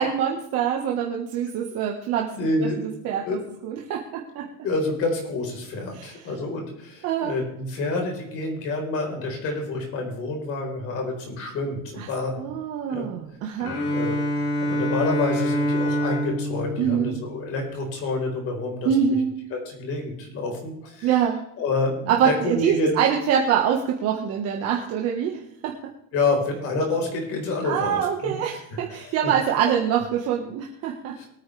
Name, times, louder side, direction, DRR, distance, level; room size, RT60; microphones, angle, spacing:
voice 1, 0.0-2.3 3.0-4.5 5.9-6.1 7.0-7.3 12.0-12.1 12.4-13.8 16.8-17.2 18.8-19.3 21.0-21.4 22.1-25.7 27.6-31.1, right 8 dB, 45° right, 0 dB, 1.5 m, -24 dB
voice 2, 2.3-2.8 3.2-3.4 4.6-12.5 12.9-13.1 13.5-14.2 14.6-19.2 19.5-21.1 21.6-23.0 26.1-28.6 28.9-29.3 31.2-31.3, left 3 dB, 40° left, 1 dB, 4.4 m, -28 dB
Bowed string instrument, 13.6-17.7, equal, 75° left, 6.5 m, -26 dB
23.0 x 9.3 x 3.4 m, 0.80 s
cardioid pair, 180°, 34 cm